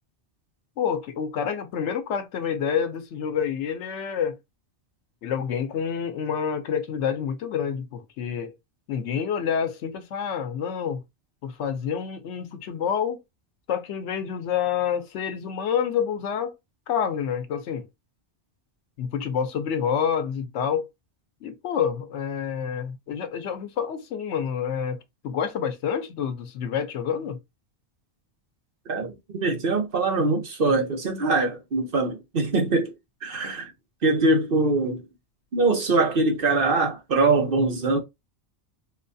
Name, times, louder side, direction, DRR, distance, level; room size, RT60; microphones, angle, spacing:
voice 1, 0.8-4.4 5.2-8.5 8.9-11.0 11.4-13.2 13.7-16.5 16.9-17.9 19.0-20.9 21.4-25.0 25.2-27.4, left 7 dB, 85° left, 1.0 m, -28 dB
voice 2, 28.9-32.9 33.2-33.7 34.0-35.0 35.5-38.0, right 3 dB, 55° right, 1.1 m, -23 dB
4.2 x 2.3 x 2.6 m
omnidirectional pair, 1.1 m